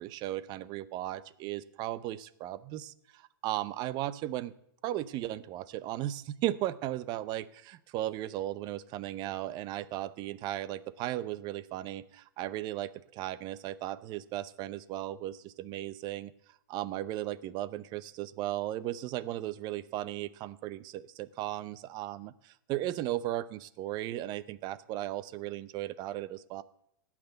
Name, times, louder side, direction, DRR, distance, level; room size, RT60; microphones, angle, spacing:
voice 1, 0.0-4.5 4.8-16.3 16.7-26.6, right 14 dB, 40° right, 17 dB, 0.7 m, -36 dB
16.5 x 6.0 x 7.9 m, 0.74 s
hypercardioid pair, 130°, 11 cm